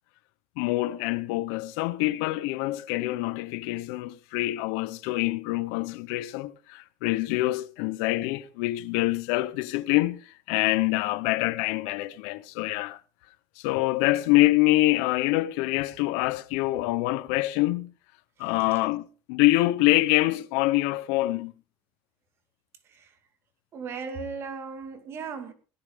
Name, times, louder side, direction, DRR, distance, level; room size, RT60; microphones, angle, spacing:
voice 1, 0.6-13.0 13.6-17.9 18.4-21.5, left 18 dB, 80° left, 0.9 m, -25 dB
voice 2, 23.7-25.5, right 5 dB, 35° right, 2.2 m, -37 dB
17.5 x 13.5 x 3.8 m
cardioid pair, 170°, 8 cm